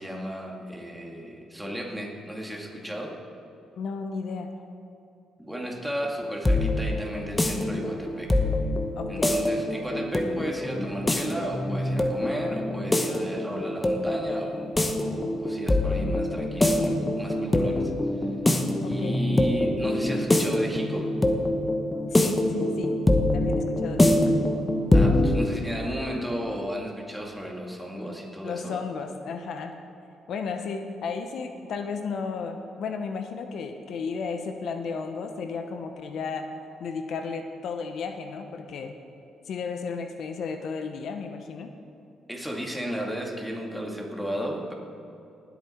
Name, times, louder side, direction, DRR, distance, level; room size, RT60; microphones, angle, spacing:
voice 1, 0.0-3.2 5.4-8.4 9.1-14.7 15.0-17.9 18.8-21.1 24.9-28.8 42.3-44.7, equal, 5° right, -1 dB, 2.2 m, -34 dB
voice 2, 3.8-4.5 7.5-7.7 8.9-9.4 13.2-13.3 18.8-19.2 22.0-23.0 23.3-24.4 28.4-29.7 30.3-36.5 36.8-38.9 39.4-41.7, left 5 dB, 70° left, 6 dB, 0.9 m, -34 dB
sound 1, 6.0-25.5, left 1 dB, 15° left, 1.0 m, -24 dB
19.0 x 8.2 x 4.5 m, 2.8 s
cardioid pair, 90°, 0 cm